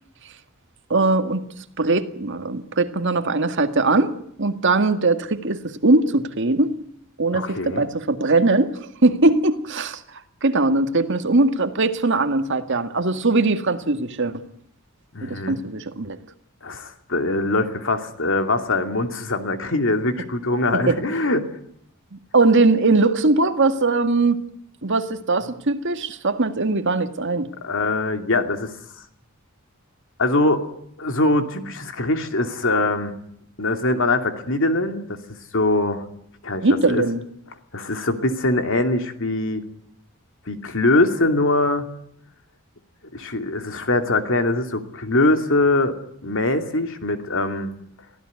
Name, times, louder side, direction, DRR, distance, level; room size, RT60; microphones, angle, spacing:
voice 1, 0.9-1.4 1.8-4.1 4.4-6.7 7.2-10.0 10.4-14.4 15.2-16.2 20.7-21.0 22.1-24.4 24.8-27.5 36.6-37.2, right 3 dB, 60° right, 1.9 m, -20 dB
voice 2, 7.3-7.9 15.1-15.6 16.6-21.5 27.6-28.7 30.2-30.7 31.0-33.1 33.6-35.2 35.5-36.1 36.4-37.0 37.7-39.6 40.5-41.9 43.1-46.0 46.2-47.7, left 2 dB, 65° left, 2.7 m, -22 dB
23.5 x 16.0 x 9.6 m
head